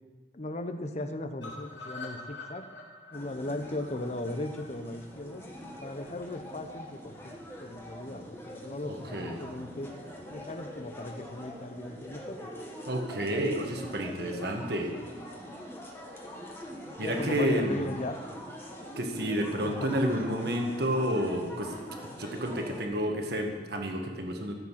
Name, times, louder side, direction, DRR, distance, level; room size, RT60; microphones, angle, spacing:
voice 1, 0.3-2.7 3.1-5.4 5.8-9.9 10.3-12.5 17.0-18.2 19.6-20.5, left 2 dB, 40° left, 8 dB, 0.8 m, -37 dB
sound 1, 1.4-5.4 5.8-5.9 6.2-6.3 6.5-6.6, left 3 dB, 80° left, 3.1 m, -45 dB
sound 2, 3.1-22.8, equal, 15° left, 1.6 m, -44 dB
voice 2, 8.8-9.4 12.9-14.9 17.0-17.9 19.0-21.7 22.2-24.5, equal, 60° right, 3 dB, 1.6 m, -30 dB
14.5 x 7.6 x 5.8 m, 1.3 s
head